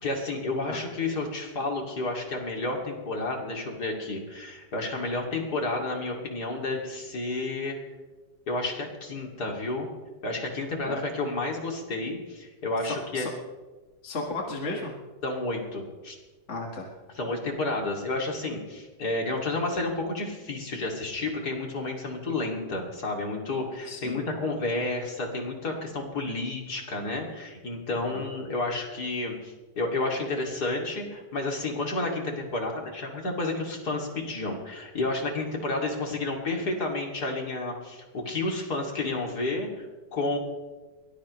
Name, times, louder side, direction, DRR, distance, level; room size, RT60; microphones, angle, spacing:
voice 1, 0.0-7.8 8.5-9.9 10.2-13.3 15.2-16.1 17.1-39.9 40.1-40.4, left 2 dB, 65° left, 1 dB, 3.2 m, -31 dB
voice 2, 12.8-13.3 14.0-15.0 16.5-16.9 23.9-24.2 28.1-28.3, left 2 dB, 40° left, 0 dB, 2.1 m, -34 dB
22.5 x 19.0 x 3.2 m, 1.2 s
omnidirectional pair, 1.9 m